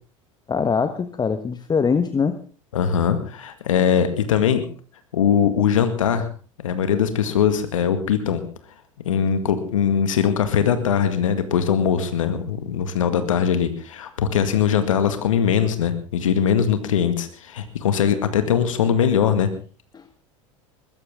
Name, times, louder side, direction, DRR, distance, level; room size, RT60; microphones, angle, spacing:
voice 1, 0.5-2.4 19.9-20.0, left 5 dB, 25° left, 10 dB, 1.4 m, -22 dB
voice 2, 2.7-4.6 5.1-6.3 6.6-8.4 9.1-19.5, left 8 dB, 85° left, 9 dB, 1.9 m, -21 dB
21.5 x 15.0 x 3.7 m, 0.37 s
hypercardioid pair, 80°, 17 cm